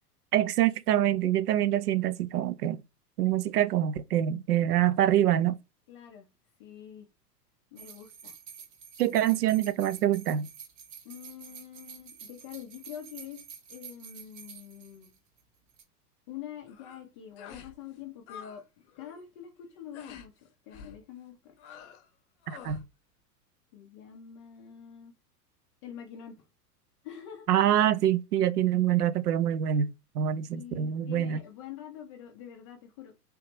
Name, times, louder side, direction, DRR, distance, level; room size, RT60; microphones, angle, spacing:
voice 1, 0.3-2.8 3.2-5.6 9.0-10.5 22.5-22.8 27.5-31.4, right 11 dB, 70° right, 0.5 m, -25 dB
voice 2, 5.9-6.3 6.6-7.1 7.7-8.3 11.0-13.4 13.7-15.1 16.3-18.6 19.0-21.5 23.7-25.1 25.8-26.4 27.0-27.5 30.5-33.2, left 10 dB, 20° left, 0.3 m, -45 dB
sound 1, 7.8-15.4 15.7-15.8, right 7 dB, 30° right, 0.8 m, -49 dB
sound 2, 16.7-17.0 17.4-17.8 18.0-18.6 18.9-19.2 19.9-20.3 20.7-21.0 21.6-22.1 22.4-22.9, left 7 dB, 45° left, 0.7 m, -48 dB
3.5 x 2.8 x 2.9 m
figure-of-eight pair, 95°, 48 cm